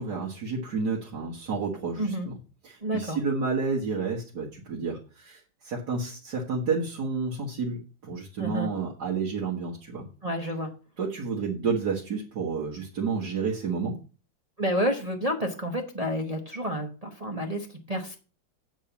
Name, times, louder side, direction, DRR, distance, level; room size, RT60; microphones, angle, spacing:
voice 1, 0.0-2.3 2.6-7.8 8.0-10.1 11.0-13.9, right 4 dB, 55° right, -3 dB, 2.2 m, -30 dB
voice 2, 2.0-2.3 2.8-3.2 8.4-8.7 10.2-10.7 14.6-18.2, equal, 25° right, 2 dB, 1.0 m, -30 dB
8.6 x 4.6 x 7.0 m, 0.35 s
omnidirectional pair, 2.1 m